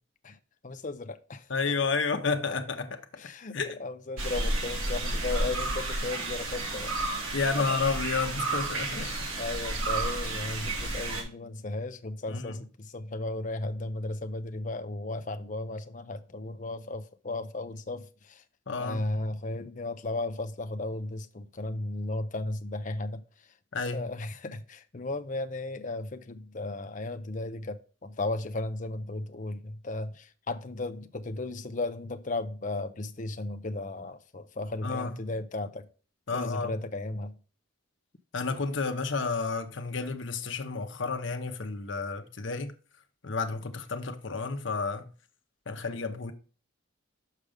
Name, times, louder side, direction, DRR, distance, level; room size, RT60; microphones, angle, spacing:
voice 1, 0.6-1.5 3.2-7.2 7.6-7.7 8.9-18.4 18.8-23.2 23.9-35.9 36.3-37.4, left 2 dB, 40° left, 0.5 m, -35 dB
voice 2, 1.5-3.0 3.5-3.8 7.3-9.1 12.3-12.6 18.7-19.0 23.7-24.1 34.8-35.2 36.3-36.7 38.3-42.7 43.2-45.1 45.7-46.3, left 4 dB, 65° left, 0.8 m, -31 dB
sound 1, 4.2-11.2, right 2 dB, 80° right, 2.0 m, -31 dB
6.5 x 5.2 x 5.0 m
head